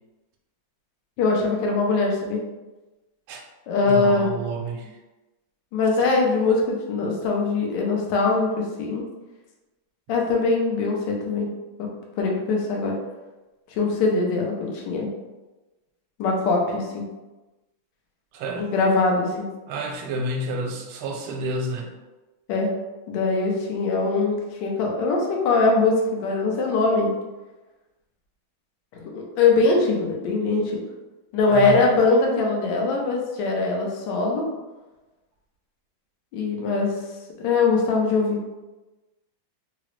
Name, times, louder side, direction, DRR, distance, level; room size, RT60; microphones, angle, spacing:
voice 1, 1.2-2.4 3.7-4.3 5.7-9.0 10.1-11.5 11.8-13.0 13.8-15.1 16.2-17.0 18.6-19.5 22.5-22.7 23.1-27.1 29.0-30.8 31.3-34.5 36.3-37.0 37.4-38.6, left 3 dB, 70° left, -1 dB, 1.2 m, -22 dB
voice 2, 3.8-5.0 18.3-18.7 19.7-21.9 31.5-31.9, right 1 dB, 85° right, 2 dB, 1.4 m, -29 dB
3.8 x 2.0 x 3.0 m, 1.1 s
omnidirectional pair, 2.3 m